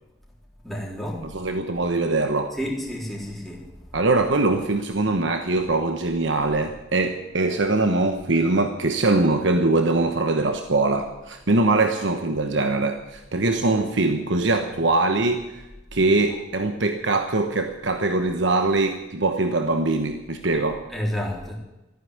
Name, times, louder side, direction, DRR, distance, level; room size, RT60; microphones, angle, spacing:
voice 1, 0.6-1.3 2.5-3.6 20.5-20.6 20.9-21.5, equal, ahead, -3 dB, 3.9 m, -30 dB
voice 2, 1.3-2.5 3.9-15.6 15.9-20.8, right 2 dB, 65° right, 6 dB, 1.1 m, -22 dB
14.5 x 9.8 x 9.6 m, 1.0 s
head